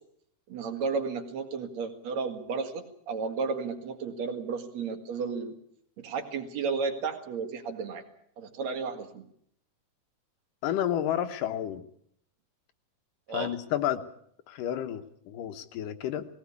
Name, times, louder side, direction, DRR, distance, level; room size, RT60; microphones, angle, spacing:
voice 1, 0.5-5.5 6.0-8.0 8.4-9.3 13.3-13.5, right 5 dB, 60° right, 7 dB, 3.0 m, -33 dB
voice 2, 10.6-11.8 13.3-14.0 14.5-16.3, left 11 dB, 90° left, 9 dB, 2.7 m, -31 dB
19.5 x 17.5 x 8.3 m, 0.68 s
omnidirectional pair, 3.7 m